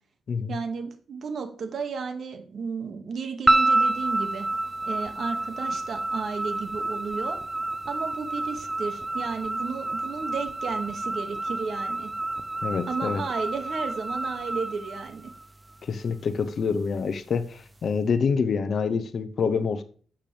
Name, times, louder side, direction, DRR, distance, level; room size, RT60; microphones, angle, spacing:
voice 1, 0.5-4.5 4.8-7.4 7.9-12.1 12.9-15.3, right 5 dB, 65° right, 2.1 m, -33 dB
sound 1, 3.5-15.8, right 2 dB, 15° right, 0.8 m, -29 dB
voice 2, 12.6-13.2 15.8-19.8, left 5 dB, 60° left, 1.0 m, -26 dB
11.5 x 8.7 x 3.5 m
cardioid pair, 90°, 0 cm